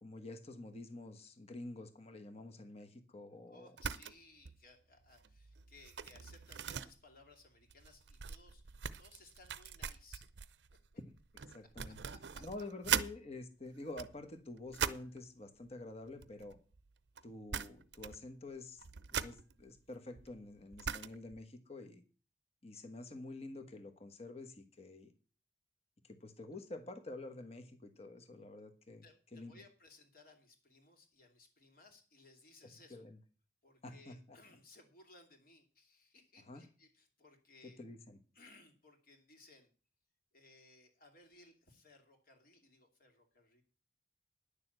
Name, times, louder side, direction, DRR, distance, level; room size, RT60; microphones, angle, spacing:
voice 1, 0.0-3.7 11.0-11.2 11.5-12.0 12.4-16.6 17.2-18.8 19.1-22.0 22.6-25.1 26.0-29.0 29.3-29.5 32.9-33.2 33.8-34.4 36.5-36.6 37.6-38.2, left 2 dB, 35° left, 7 dB, 1.3 m, -48 dB
voice 2, 3.5-10.3 12.1-12.4 29.0-33.1 33.6-37.8 38.3-39.7 40.3-43.6, left 3 dB, 55° left, 4 dB, 2.7 m, -62 dB
sound 1, 3.8-4.2 4.4-4.7 5.1-13.1 13.8-15.2 16.1-16.9 17.2-17.3 17.5-18.3 18.5-21.4, right 8 dB, 75° right, 0.6 m, -41 dB
10.0 x 6.9 x 8.0 m, 0.37 s
head